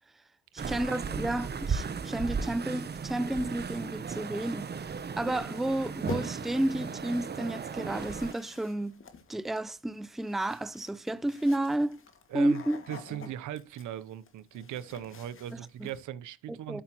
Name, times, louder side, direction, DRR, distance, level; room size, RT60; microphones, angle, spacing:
voice 1, 0.5-4.9 5.2-9.0 9.3-12.0 12.3-12.8 13.2-13.3 15.5-15.9 16.7-16.8, right 1 dB, ahead, 0.5 m, -31 dB
sound 1, 0.6-8.3, right 5 dB, 35° right, 0.9 m, -36 dB
sound 2, 6.1-6.6 7.5-16.0, left 5 dB, 45° left, 2.0 m, -47 dB
voice 2, 12.3-16.8, right 11 dB, 75° right, 0.8 m, -39 dB
13.5 x 5.7 x 2.9 m
cardioid pair, 90°, 30 cm